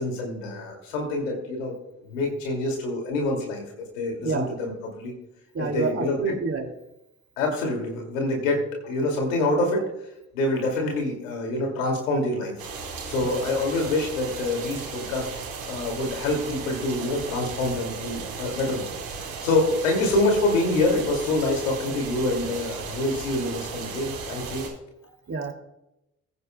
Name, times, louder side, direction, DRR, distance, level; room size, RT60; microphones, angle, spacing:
voice 1, 0.0-1.7 2.1-3.6 4.0-5.1 5.6-6.3 7.4-9.8 10.3-12.6 13.1-15.3 15.7-18.9 19.4-24.7, left 2 dB, 85° left, 1 dB, 2.4 m, -26 dB
voice 2, 5.5-6.7 13.2-13.4 25.3-25.5, right 4 dB, 35° right, 2 dB, 2.4 m, -28 dB
sound 1, 12.6-24.7, right 5 dB, 75° right, 4.1 m, -36 dB
21.5 x 9.7 x 2.2 m, 0.89 s
hypercardioid pair, 45°, 39 cm